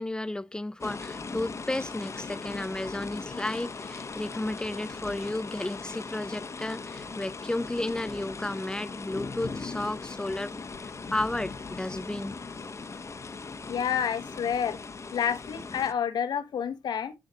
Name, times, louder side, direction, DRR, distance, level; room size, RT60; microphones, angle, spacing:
voice 1, 0.0-12.4, left 1 dB, 10° left, 0.4 m, -33 dB
sound 1, 0.8-15.9, left 4 dB, 40° left, 1.0 m, -39 dB
voice 2, 13.7-14.8 15.1-17.1, left 8 dB, 70° left, 1.0 m, -29 dB
10.5 x 3.6 x 2.8 m
supercardioid pair, 50°, 8 cm